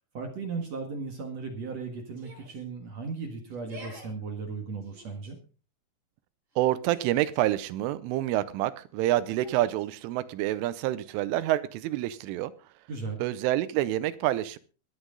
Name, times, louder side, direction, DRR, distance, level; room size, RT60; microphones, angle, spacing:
voice 1, 0.1-5.4 12.9-13.2, right 4 dB, 60° right, 3 dB, 1.8 m, -36 dB
Yell, 2.1-2.6 3.5-4.1 4.8-5.3 6.5-7.4 9.2-9.9, right 1 dB, 35° right, 7.9 m, -48 dB
voice 2, 6.6-12.5 13.2-14.6, right 14 dB, 90° right, 14 dB, 3.3 m, -27 dB
23.0 x 8.2 x 3.9 m, 0.35 s
omnidirectional pair, 5.6 m